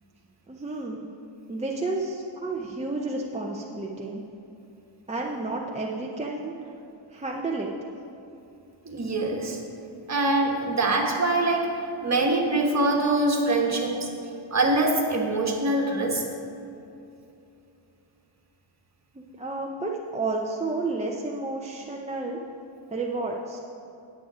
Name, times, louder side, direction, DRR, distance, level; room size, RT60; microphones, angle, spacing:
voice 1, 0.5-1.1 1.5-4.2 5.1-6.7 7.1-7.7 19.1-22.4 22.9-23.6, right 3 dB, 15° right, -2 dB, 0.5 m, -31 dB
voice 2, 8.8-9.6 10.1-11.7 12.0-13.9 14.5-16.2, right 2 dB, 30° right, 0 dB, 1.4 m, -24 dB
9.7 x 8.7 x 4.9 m, 2.7 s
wide cardioid pair, 160°, 50 cm